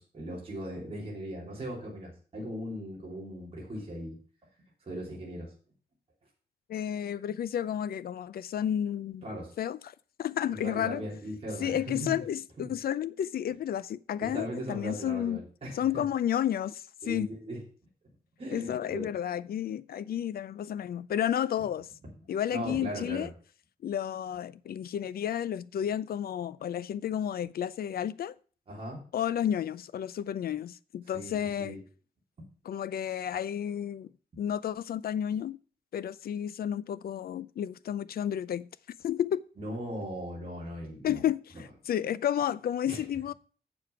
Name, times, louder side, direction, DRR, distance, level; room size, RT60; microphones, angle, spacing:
voice 1, 0.0-4.2 4.8-5.5 9.2-9.5 10.5-12.2 12.6-12.7 14.2-16.0 17.0-17.6 18.4-19.0 22.5-23.3 28.7-29.0 31.1-31.8 39.6-41.2 42.8-43.0, equal, 35° right, 3.1 m, -38 dB
voice 2, 6.7-9.2 9.6-11.0 11.6-15.4 15.7-17.3 18.5-21.9 22.3-23.3 23.8-28.3 29.1-31.7 32.7-34.1 34.4-35.6 35.9-38.7 39.0-39.4 41.0-43.3, left 10 dB, 70° left, 0.5 m, -31 dB
7.6 x 7.0 x 5.7 m
wide cardioid pair, 170°, 16 cm